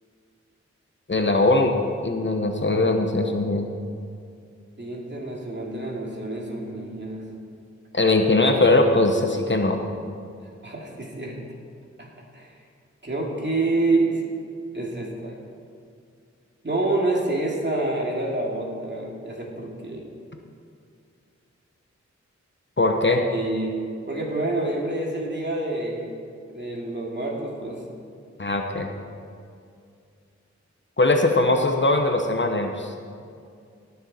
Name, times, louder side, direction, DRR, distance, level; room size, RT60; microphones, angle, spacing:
voice 1, 1.1-3.6 7.9-9.8 22.8-23.2 28.4-28.9 31.0-32.9, left 2 dB, 40° left, 4 dB, 1.0 m, -20 dB
voice 2, 4.8-7.2 10.4-11.4 12.0-12.1 12.3-12.5 13.0-14.2 14.7-15.3 16.6-20.0 23.0-23.8 24.1-26.1 26.5-27.8, right 2 dB, 40° right, -2 dB, 2.6 m, -27 dB
18.0 x 6.9 x 4.3 m, 2.4 s
wide cardioid pair, 55°, 29 cm